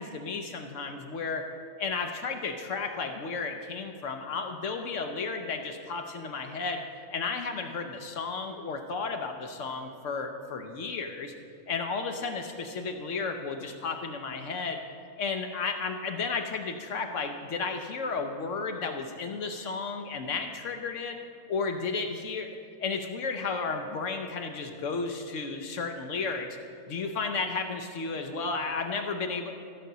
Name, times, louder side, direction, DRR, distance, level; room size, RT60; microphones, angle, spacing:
voice 1, 0.0-1.5 1.8-6.8 7.1-11.3 11.7-14.8 15.2-21.2 21.5-22.5 22.8-26.6 26.9-29.5, left 4 dB, 65° left, 5 dB, 0.9 m, -33 dB
14.0 x 5.1 x 6.6 m, 2.5 s
omnidirectional pair, 1.5 m